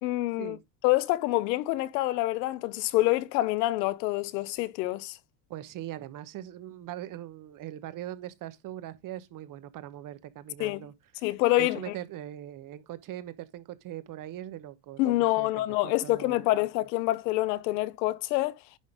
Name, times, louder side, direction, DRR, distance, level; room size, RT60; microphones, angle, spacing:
voice 1, 0.0-0.6 0.8-5.2 10.6-10.9 11.2-11.8 15.0-18.6, left 18 dB, 80° left, 0.9 m, -26 dB
voice 2, 5.5-11.3 11.6-15.0 15.4-16.4, right 12 dB, 40° right, 1.1 m, -41 dB
10.5 x 3.9 x 5.0 m
supercardioid pair, 120°, 49 cm